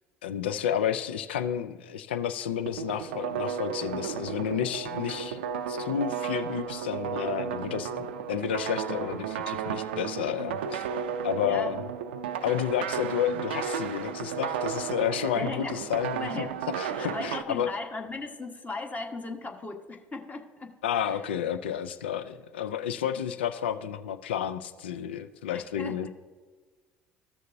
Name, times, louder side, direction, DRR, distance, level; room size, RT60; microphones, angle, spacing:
voice 1, 0.2-7.9 8.3-10.8 11.2-11.8 12.4-16.5 16.8-17.7 20.8-26.1, left 9 dB, 85° left, 11 dB, 0.4 m, -31 dB
sound 1, 2.7-17.4, right 7 dB, 85° right, 0.5 m, -33 dB
voice 2, 15.3-15.8 16.1-16.6 16.9-20.8 21.0-21.3 25.5-26.1, left 3 dB, 25° left, 3 dB, 1.3 m, -37 dB
14.5 x 6.5 x 2.6 m, 1.4 s
hypercardioid pair, 65°, 6 cm